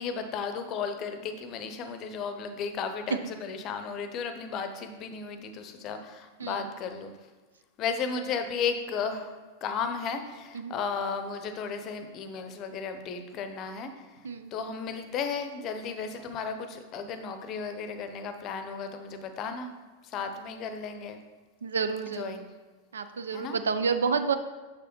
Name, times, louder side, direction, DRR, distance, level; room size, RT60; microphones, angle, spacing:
voice 1, 0.0-7.1 7.8-9.3 9.6-14.2 14.5-19.7 20.0-21.2 22.1-22.5 23.3-23.6, left 5 dB, 35° left, 8 dB, 0.7 m, -34 dB
voice 2, 21.6-22.4 22.9-24.4, right 5 dB, 70° right, 10 dB, 0.5 m, -29 dB
6.8 x 6.5 x 3.1 m, 1.3 s
figure-of-eight pair, 90°, 0 cm